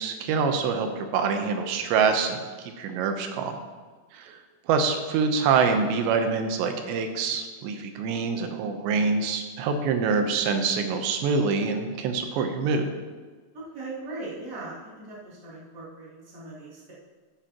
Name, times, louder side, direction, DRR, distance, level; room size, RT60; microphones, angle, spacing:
voice 1, 0.0-3.6 4.1-4.4 4.7-12.9, right 5 dB, 85° right, 6 dB, 3.2 m, -25 dB
voice 2, 13.7-16.9, right 2 dB, 25° right, -8 dB, 3.1 m, -39 dB
13.0 x 9.6 x 3.0 m, 1.4 s
omnidirectional pair, 5.0 m